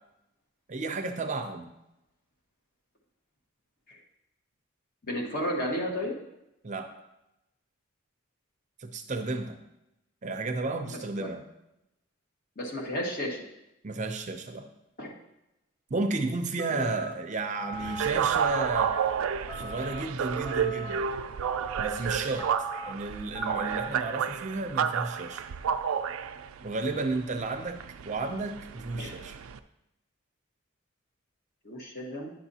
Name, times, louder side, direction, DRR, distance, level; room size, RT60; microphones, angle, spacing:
voice 1, 0.7-1.7 6.6-6.9 8.8-9.6 10.2-11.4 13.8-14.7 15.9-18.9 19.5-21.0 21.8-25.4 26.6-29.4, right 3 dB, 35° right, 6 dB, 0.5 m, -33 dB
voice 2, 5.0-6.2 10.8-11.3 12.5-13.4 15.0-15.1 16.7-16.8 29.0-29.2 31.6-32.3, equal, 45° left, -1 dB, 1.6 m, -33 dB
sound 1, 16.6-17.1 17.5-18.1 18.5-19.1 19.5-20.0 20.4-21.0 21.4-21.9 22.4-22.9 23.3-23.9, right 2 dB, 10° left, 0.7 m, -39 dB
sound 2, 17.7-29.6, right 7 dB, 85° right, 0.4 m, -31 dB
10.0 x 7.0 x 2.8 m, 0.89 s
head